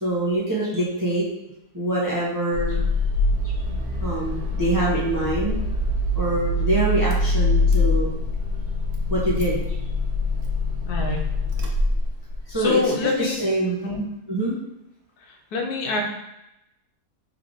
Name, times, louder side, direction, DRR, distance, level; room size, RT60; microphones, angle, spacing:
voice 1, 0.0-1.3 1.7-2.8 4.0-5.6 6.1-8.1 9.1-9.6 12.5-12.8 13.2-13.8 14.3-14.5, right 2 dB, 15° right, -6 dB, 0.7 m, -24 dB
Car / Engine starting, 2.5-12.6, left 2 dB, 80° right, 1.2 m, -24 dB
voice 2, 10.9-11.2 12.5-13.4 13.8-14.0 15.5-16.0, left 3 dB, 80° left, 1 dB, 1.2 m, -25 dB
3.4 x 3.3 x 3.8 m, 0.88 s
omnidirectional pair, 1.6 m